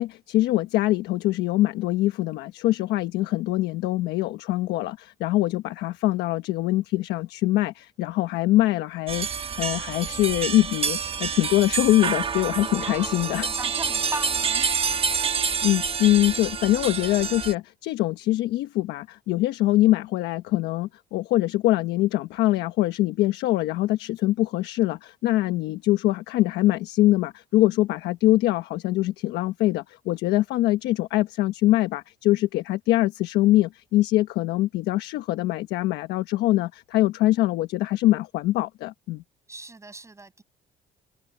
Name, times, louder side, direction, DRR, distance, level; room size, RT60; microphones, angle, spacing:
voice 1, 0.0-13.5 15.4-39.2, left 16 dB, 85° left, 1.1 m, -23 dB
sound 1, 9.1-17.5, right 6 dB, 35° right, 1.2 m, -28 dB
voice 2, 12.6-13.1 13.4-14.8 39.5-40.4, right 3 dB, 15° right, 6.9 m, -37 dB
cardioid pair, 110°, 17 cm